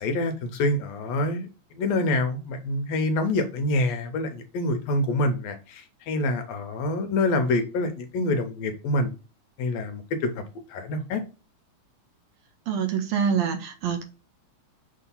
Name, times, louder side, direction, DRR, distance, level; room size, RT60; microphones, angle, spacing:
voice 1, 0.0-9.1 9.6-10.4 10.7-11.2, left 2 dB, 75° left, 7 dB, 1.7 m, -26 dB
voice 2, 12.7-14.0, right 7 dB, 80° right, 6 dB, 1.7 m, -25 dB
6.3 x 2.8 x 5.4 m, 0.31 s
omnidirectional pair, 3.4 m